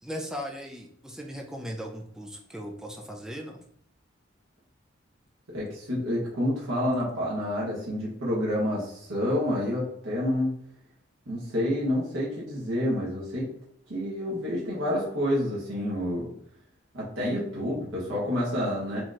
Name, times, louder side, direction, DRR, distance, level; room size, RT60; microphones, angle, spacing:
voice 1, 0.0-3.6, equal, 5° right, 1 dB, 0.4 m, -38 dB
voice 2, 5.5-10.5 11.3-13.5 13.9-16.3 16.9-19.0, left 1 dB, 80° right, -6 dB, 1.1 m, -28 dB
4.2 x 2.9 x 2.5 m, 0.67 s
head